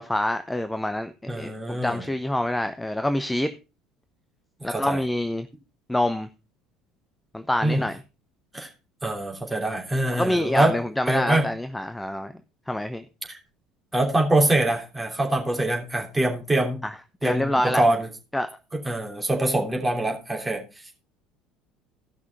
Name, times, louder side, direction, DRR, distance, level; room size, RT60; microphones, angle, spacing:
voice 1, 0.0-3.5 4.6-5.5 5.9-6.3 7.3-8.0 10.1-12.3 12.7-13.0 16.8-16.9 17.2-17.8 18.3-18.5, left 1 dB, 5° left, 0.8 m, -26 dB
voice 2, 1.3-2.1 4.6-5.0 7.6-7.8 8.5-8.7 9.0-10.8 11.1-11.5 13.3-13.4 13.9-16.8 17.2-18.1 18.7-20.6, right 1 dB, 15° right, 3.1 m, -24 dB
15.5 x 6.0 x 4.5 m
figure-of-eight pair, 60°, 0 cm